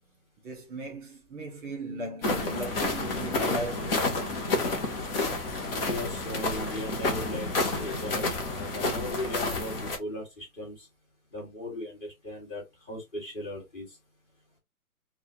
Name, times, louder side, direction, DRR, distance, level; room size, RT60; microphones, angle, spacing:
voice 1, 0.4-4.1, right 2 dB, 15° right, 1.5 m, -37 dB
sound 1, 2.2-10.0, left 3 dB, 40° left, 1.0 m, -30 dB
voice 2, 5.9-10.9 11.3-12.6 12.9-13.9, left 1 dB, 20° left, 2.2 m, -37 dB
4.1 x 2.5 x 2.9 m
hypercardioid pair, 160°, 45 cm